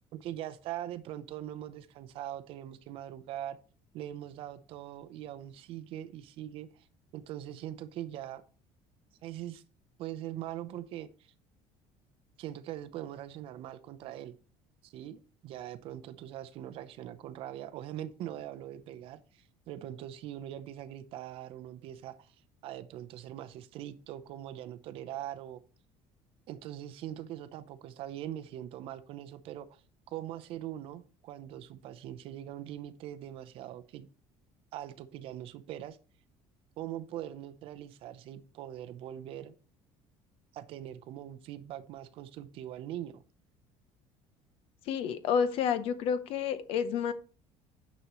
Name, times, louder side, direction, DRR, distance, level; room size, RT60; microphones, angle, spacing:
voice 1, 0.1-3.6 3.9-6.9 7.1-8.4 9.2-9.6 10.0-11.3 12.4-14.3 14.8-22.4 22.6-25.6 26.5-29.8 30.1-34.1 34.7-36.0 36.8-39.5 40.5-43.2, right 12 dB, 50° right, 0.6 m, -42 dB
voice 2, 44.9-47.1, left 7 dB, 50° left, 0.7 m, -29 dB
9.8 x 6.3 x 3.0 m
cardioid pair, 180°, 12 cm